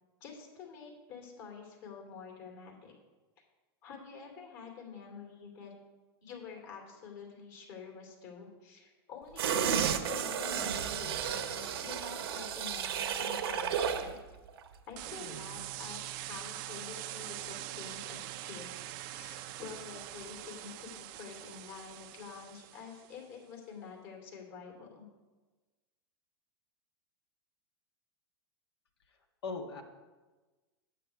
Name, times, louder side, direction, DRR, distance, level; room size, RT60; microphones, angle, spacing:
voice 1, 0.2-2.9 3.8-5.7 6.2-9.8 10.1-14.2 14.9-25.1, left 6 dB, 55° left, 1 dB, 2.9 m, -48 dB
sound 1, 9.4-14.1 14.5-14.6, right 8 dB, 65° right, 0.9 m, -32 dB
sound 2, 15.0-23.2, right 14 dB, 50° right, 0.5 m, -43 dB
voice 2, 29.1-29.8, left 4 dB, 80° left, 4 dB, 1.5 m, -40 dB
9.2 x 8.0 x 4.7 m, 1.2 s
hypercardioid pair, 100°, 13 cm